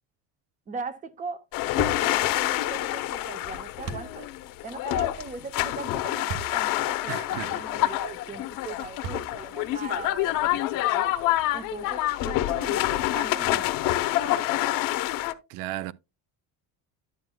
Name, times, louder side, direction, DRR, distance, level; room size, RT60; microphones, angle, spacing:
voice 1, 0.7-1.4 1.7-4.3 4.6-11.1 11.5-15.0, right 4 dB, 20° right, 0.7 m, -40 dB
sound 1, 1.5-15.3, left 15 dB, 60° left, 0.8 m, -27 dB
sound 2, 1.8-2.1 3.9-4.1 6.3-6.6 7.2-7.3 9.0-9.5, right 5 dB, 40° right, 1.2 m, -35 dB
voice 2, 7.1-7.5 15.5-15.9, right 15 dB, 60° right, 0.5 m, -34 dB
11.0 x 7.8 x 2.2 m
cardioid pair, 150°, 37 cm